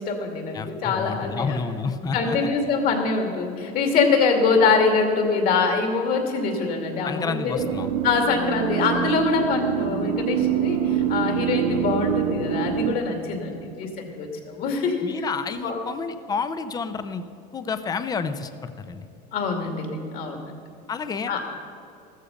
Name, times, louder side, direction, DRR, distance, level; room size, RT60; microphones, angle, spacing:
voice 1, 0.0-1.6 2.1-7.6 8.0-15.2 15.5-15.8 19.3-20.4 21.3-21.4, left 4 dB, 50° left, 3 dB, 2.5 m, -24 dB
voice 2, 0.5-2.5 7.0-7.9 15.0-17.2 17.5-19.1 20.9-21.3, left 5 dB, 20° left, 11 dB, 0.7 m, -30 dB
sound 1, 7.6-12.9, right 9 dB, 90° right, 1.0 m, -25 dB
14.5 x 14.0 x 5.2 m, 2.6 s
cardioid pair, 140°, 19 cm